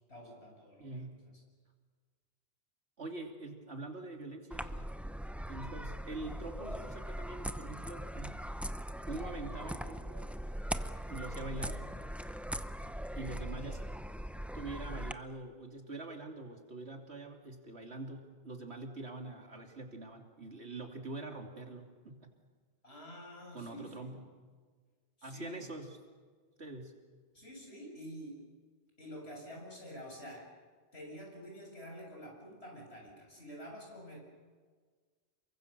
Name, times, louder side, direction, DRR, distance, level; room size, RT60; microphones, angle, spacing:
voice 1, 0.1-1.1 12.8-13.0 22.8-24.1 25.2-25.7 27.3-28.4 29.0-30.5 30.9-34.2, equal, 65° left, -1 dB, 7.9 m, -48 dB
voice 2, 0.8-1.2 3.0-4.9 5.5-8.3 9.1-10.3 11.1-11.9 13.1-13.8 14.5-22.3 23.5-24.3 25.2-26.0 26.6-26.9, right 2 dB, 70° right, 3 dB, 3.2 m, -44 dB
sound 1, 4.5-15.1, equal, ahead, 0.6 m, -40 dB
29.0 x 23.5 x 6.8 m, 1.5 s
omnidirectional pair, 1.1 m